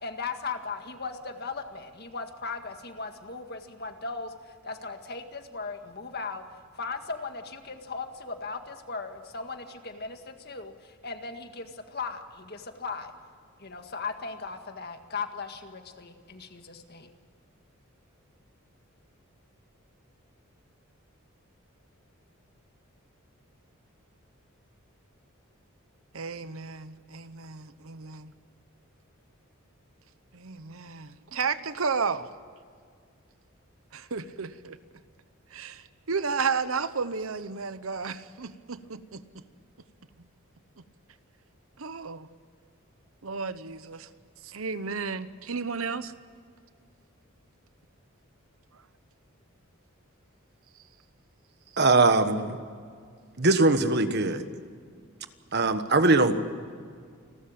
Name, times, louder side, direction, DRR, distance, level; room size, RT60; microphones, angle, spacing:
voice 1, 0.0-6.4 6.8-13.1 13.6-17.1, left 4 dB, 50° left, 6 dB, 1.8 m, -37 dB
voice 2, 26.1-28.3 30.3-32.3 33.9-34.8 35.5-39.4 41.8-42.3 43.2-44.1 44.4-46.1, right 5 dB, 75° right, 13 dB, 1.0 m, -33 dB
voice 3, 51.8-52.6 53.4-54.4 55.5-56.3, right 3 dB, 50° right, 9 dB, 1.4 m, -21 dB
29.0 x 13.5 x 8.8 m, 2.1 s
head